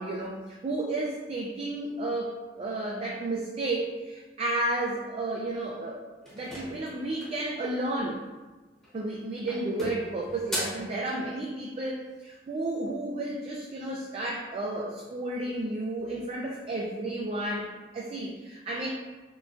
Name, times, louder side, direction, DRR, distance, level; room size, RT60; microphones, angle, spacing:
voice 1, 0.0-6.0 6.3-8.2 8.9-18.9, right 2 dB, 35° right, -3 dB, 0.3 m, -32 dB
sound 1, 6.2-7.5 8.7-9.1 9.5-10.9, equal, 5° left, 0.8 m, -37 dB
3.7 x 2.2 x 2.4 m, 1.2 s
head